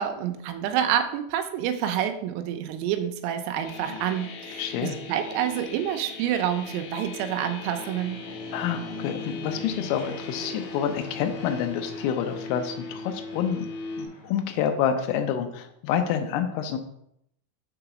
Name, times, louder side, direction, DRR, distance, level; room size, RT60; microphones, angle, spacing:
voice 1, 0.0-8.2, right 10 dB, 85° right, 7 dB, 3.4 m, -28 dB
sound 1, 3.6-14.1, left 3 dB, 70° left, 3.4 m, -39 dB
Fixed-wing aircraft airplane, 3.9-15.0, left 1 dB, 45° left, 3.6 m, -45 dB
voice 2, 4.6-5.0 8.5-13.7 14.0-16.8, left 8 dB, 85° left, 6 dB, 3.2 m, -28 dB
7.7 x 3.9 x 5.9 m, 0.74 s
omnidirectional pair, 6.0 m